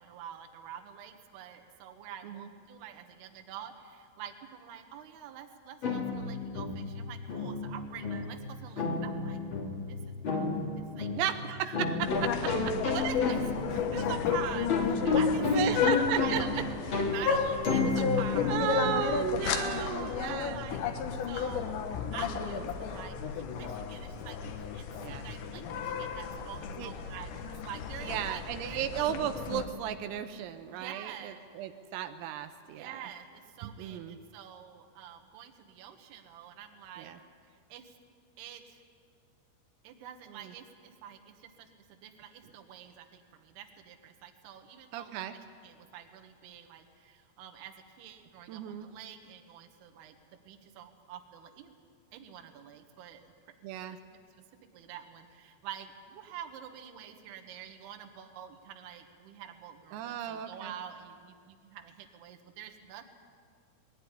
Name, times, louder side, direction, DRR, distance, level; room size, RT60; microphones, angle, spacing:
voice 1, 0.0-9.4 9.9-11.1 12.8-18.9 19.4-20.8 21.1-28.8 30.7-31.7 32.6-37.1 37.5-37.9 38.4-38.8 39.8-50.2 50.5-51.7 52.1-53.3 53.9-54.2 54.7-63.1, right 9 dB, 65° right, 5 dB, 3.0 m, -46 dB
sound 1, 5.8-19.4, left 3 dB, 50° left, 1.4 m, -32 dB
voice 2, 11.2-12.4 15.4-16.4 18.5-20.6 22.3-22.6 25.0-25.3 26.8-26.9 28.0-33.0 33.6-34.2 37.0-37.2 40.3-40.5 44.9-45.4 48.5-48.9 53.6-54.0 59.9-60.7, right 11 dB, 85° right, 8 dB, 3.5 m, -35 dB
sound 2, 12.0-29.6, left 6 dB, 70° left, 3.1 m, -33 dB
21.0 x 16.0 x 9.9 m, 2.2 s
omnidirectional pair, 6.0 m